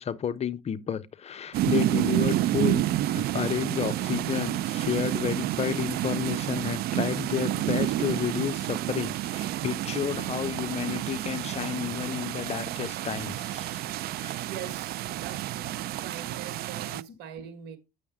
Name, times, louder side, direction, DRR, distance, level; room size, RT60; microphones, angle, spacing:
voice 1, 0.0-13.8 14.2-14.4, left 9 dB, 40° left, 0.6 m, -31 dB
sound 1, 1.5-17.0, right 14 dB, 65° right, 0.4 m, -29 dB
voice 2, 13.9-17.8, right 8 dB, 90° right, 1.4 m, -43 dB
8.5 x 6.3 x 3.5 m
cardioid pair, 110°, 17 cm